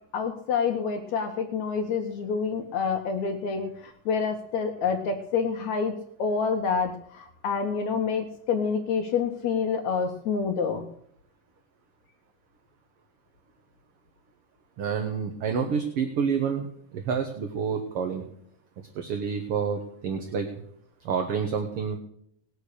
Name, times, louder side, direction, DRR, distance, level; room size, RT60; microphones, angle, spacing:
voice 1, 0.1-10.8, left 5 dB, 65° left, 5 dB, 2.4 m, -28 dB
voice 2, 14.8-18.3 19.0-20.5 21.1-22.0, right 6 dB, 55° right, 5 dB, 1.9 m, -28 dB
19.0 x 7.3 x 6.6 m, 0.69 s
omnidirectional pair, 3.7 m